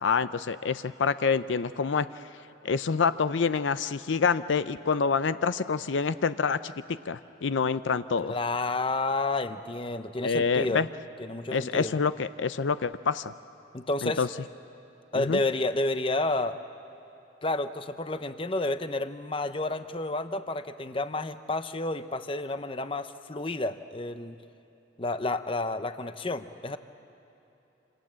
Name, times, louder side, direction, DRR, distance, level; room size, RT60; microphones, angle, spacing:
voice 1, 0.0-2.1 2.6-8.3 10.2-10.9 11.5-13.3 14.0-14.3 15.2-15.4, left 5 dB, 75° left, 13 dB, 0.5 m, -27 dB
voice 2, 8.2-10.8 11.2-11.9 13.7-14.2 15.1-16.6 17.4-24.4 25.0-26.8, left 2 dB, 30° left, 10 dB, 0.8 m, -30 dB
27.5 x 27.0 x 7.5 m, 3.0 s
head